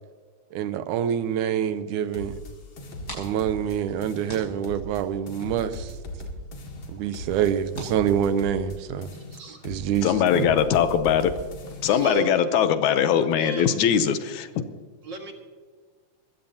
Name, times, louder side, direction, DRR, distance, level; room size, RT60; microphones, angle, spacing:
voice 1, 0.5-2.4 3.1-6.0 6.9-9.1 9.6-10.5, right 9 dB, 80° right, 2.2 m, -26 dB
sound 1, 2.1-3.8 4.0-5.0 5.3-8.8 9.0-10.0 10.3-12.1, left 1 dB, 55° left, 3.0 m, -39 dB
sound 2, 2.8-9.1, equal, 30° left, 6.2 m, -46 dB
voice 2, 9.3-9.6 11.8-12.4 13.2-13.8 15.0-15.3, right 2 dB, 40° right, 2.1 m, -34 dB
voice 3, 10.0-11.3 11.8-14.5, left 8 dB, 75° left, 2.1 m, -21 dB
21.5 x 16.0 x 2.8 m
omnidirectional pair, 3.5 m